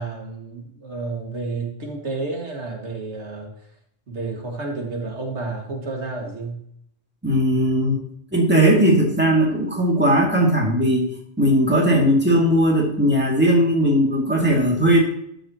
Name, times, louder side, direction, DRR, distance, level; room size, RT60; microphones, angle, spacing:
voice 1, 0.0-3.5 4.1-6.6, right 3 dB, 90° right, 0 dB, 2.3 m, -30 dB
voice 2, 7.2-8.0 8.3-11.1 11.4-15.0, equal, 10° right, -1 dB, 2.2 m, -18 dB
13.0 x 6.4 x 2.9 m, 0.71 s
omnidirectional pair, 1.1 m